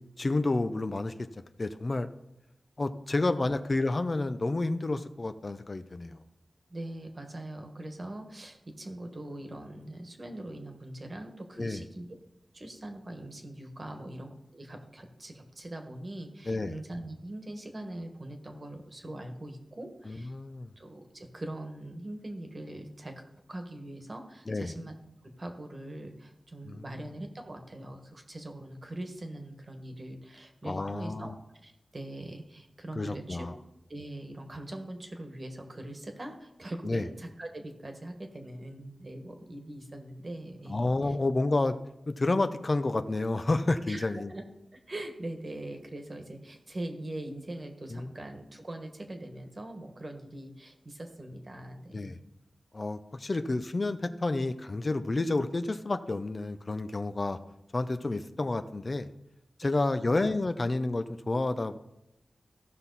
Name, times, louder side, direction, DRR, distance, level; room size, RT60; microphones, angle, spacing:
voice 1, 0.2-2.1 2.8-6.2 11.6-11.8 13.9-14.0 16.5-16.8 20.1-20.7 24.5-24.7 26.6-26.8 30.6-31.3 33.0-33.6 36.8-37.1 40.7-41.8 42.1-44.3 47.9-48.1 51.9-52.2 52.7-57.4 57.7-59.1 59.6-61.8, left 2 dB, 40° left, 10 dB, 0.5 m, -30 dB
voice 2, 6.7-12.1 12.5-20.3 20.8-24.9 25.4-33.5 33.9-41.2 43.9-44.4 44.7-52.2 59.6-59.9, right 1 dB, 40° right, 4 dB, 1.5 m, -42 dB
15.0 x 5.7 x 4.1 m, 0.86 s
wide cardioid pair, 90°, 0 cm